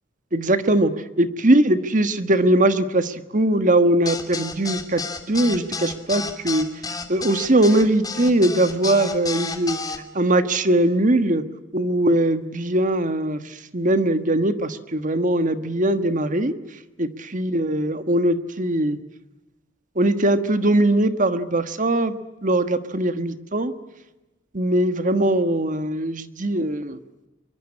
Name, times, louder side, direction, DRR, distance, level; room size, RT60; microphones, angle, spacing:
voice 1, 0.3-0.9 1.2-5.0 5.3-6.7 7.1-9.8 10.1-11.4 11.7-13.4 13.7-16.5 17.0-19.0 19.9-22.1 22.4-23.7 24.5-27.0, right 1 dB, 40° right, 10 dB, 1.5 m, -20 dB
sound 1, 4.1-10.0, left 4 dB, 20° left, 2.6 m, -31 dB
25.0 x 23.5 x 9.9 m, 1.0 s
head